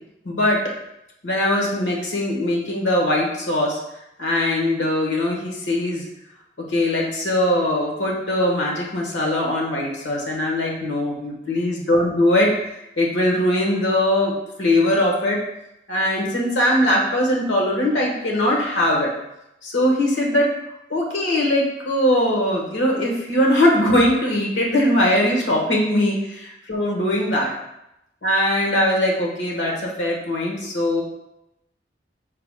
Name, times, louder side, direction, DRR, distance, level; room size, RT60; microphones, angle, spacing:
voice 1, 0.2-0.6 1.2-3.8 4.2-6.0 6.7-12.7 13.0-14.3 14.6-15.4 15.9-19.1 19.6-20.5 20.9-26.3 26.7-27.5 28.2-31.0, left 1 dB, 85° left, -1 dB, 1.2 m, -21 dB
4.7 x 2.2 x 4.8 m, 0.85 s
head